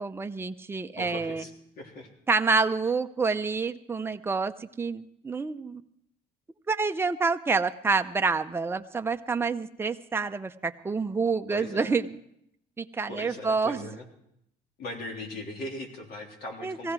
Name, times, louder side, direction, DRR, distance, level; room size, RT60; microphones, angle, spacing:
voice 1, 0.0-1.5 2.3-5.8 6.7-12.2 12.8-13.9 16.6-16.9, right 4 dB, 15° right, 7 dB, 0.6 m, -28 dB
voice 2, 1.0-1.5 1.8-2.1 11.5-12.0 13.1-14.0 14.8-16.9, left 1 dB, 70° left, 0 dB, 3.5 m, -39 dB
18.0 x 15.0 x 4.7 m, 0.76 s
cardioid pair, 110°, 17 cm